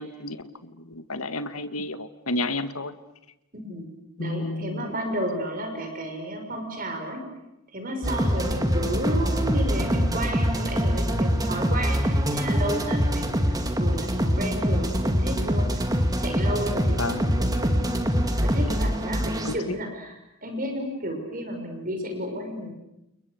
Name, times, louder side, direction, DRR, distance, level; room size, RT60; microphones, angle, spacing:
voice 1, 0.0-2.9 4.2-4.9 17.0-17.3 19.4-19.8, left 2 dB, 80° left, 10 dB, 1.9 m, -31 dB
voice 2, 3.5-3.9 4.2-7.2 7.7-15.7 16.2-20.1 20.4-22.7, right 1 dB, 40° right, 4 dB, 6.1 m, -32 dB
sound 1, 8.0-19.5, equal, 15° right, 2.2 m, -24 dB
30.0 x 30.0 x 6.6 m, 0.89 s
head